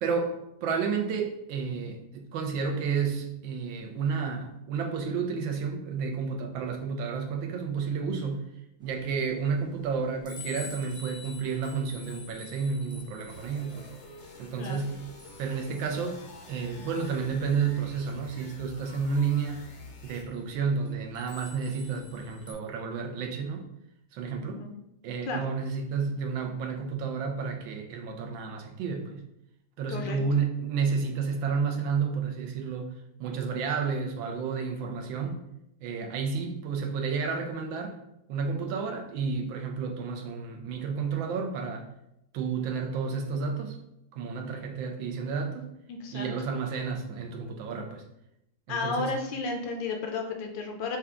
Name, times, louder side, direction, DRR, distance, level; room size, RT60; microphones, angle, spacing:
voice 1, 0.0-8.5 8.8-13.9 14.4-15.1 15.4-19.7 20.0-23.7 24.1-24.6 25.0-29.2 29.8-32.9 33.2-35.4 35.8-38.0 38.3-41.9 42.3-43.8 44.1-45.7 46.1-48.0 48.7-49.1, right 5 dB, 80° right, 3 dB, 1.4 m, -31 dB
sound 1, 8.8-22.5, left 4 dB, 5° right, 0.6 m, -50 dB
sound 2, 13.3-20.2, left 2 dB, 55° left, 0.8 m, -49 dB
voice 2, 24.4-24.7 25.3-25.4 29.9-30.2 45.9-46.3 48.7-51.0, left 4 dB, 75° left, 3 dB, 1.2 m, -33 dB
5.6 x 2.3 x 3.6 m, 0.81 s
omnidirectional pair, 2.1 m